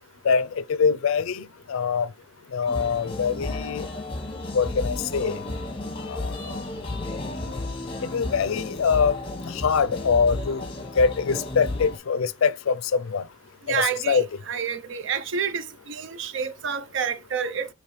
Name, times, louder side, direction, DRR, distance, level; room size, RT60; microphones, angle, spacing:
voice 1, 0.2-2.1 2.5-3.9 4.5-5.4 6.0-6.5 8.0-9.1 9.5-10.6 11.0-13.2 13.7-14.3, left 6 dB, 75° left, 0.4 m, -24 dB
sound 1, 2.7-12.0, left 2 dB, 25° left, 0.9 m, -33 dB
voice 2, 13.7-17.7, right 6 dB, 60° right, 0.5 m, -29 dB
4.8 x 3.1 x 3.1 m
head